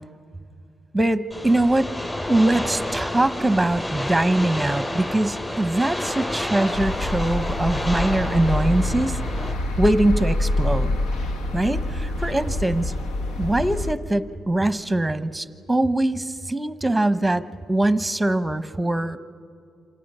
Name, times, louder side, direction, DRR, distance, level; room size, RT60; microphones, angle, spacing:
voice 1, 0.9-1.9 2.3-9.2 9.8-11.0 11.5-12.9 13.4-19.2, right 1 dB, 10° right, 12 dB, 1.0 m, -22 dB
sound 1, 1.3-9.5, left 1 dB, 15° left, 6.3 m, -30 dB
sound 2, 6.7-13.9, left 1 dB, 85° left, 1.4 m, -26 dB
27.5 x 26.5 x 5.6 m, 2.3 s
cardioid pair, 90°, 0 cm